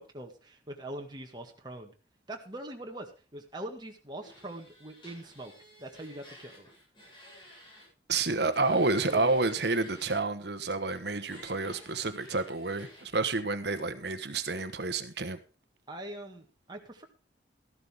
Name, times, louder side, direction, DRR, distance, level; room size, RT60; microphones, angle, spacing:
voice 1, 0.0-1.9 2.3-5.5 5.8-6.7 8.7-9.4 15.9-17.1, right 1 dB, 25° right, 2 dB, 1.8 m, -43 dB
sound 1, 4.2-7.9 8.1-10.2 10.8-13.1, left 1 dB, 25° left, 7.7 m, -53 dB
voice 2, 8.1-15.4, right 3 dB, 60° right, 11 dB, 1.2 m, -29 dB
14.0 x 12.0 x 3.6 m, 0.33 s
head